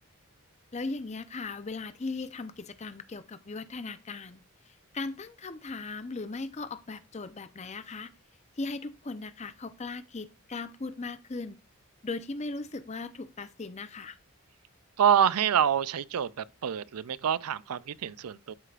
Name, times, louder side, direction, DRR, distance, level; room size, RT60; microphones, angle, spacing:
voice 1, 0.7-8.1 8.6-11.6 12.0-14.2, left 3 dB, 30° left, 0.6 m, -38 dB
voice 2, 15.0-18.5, right 8 dB, 85° right, 0.4 m, -26 dB
12.0 x 4.9 x 2.4 m
head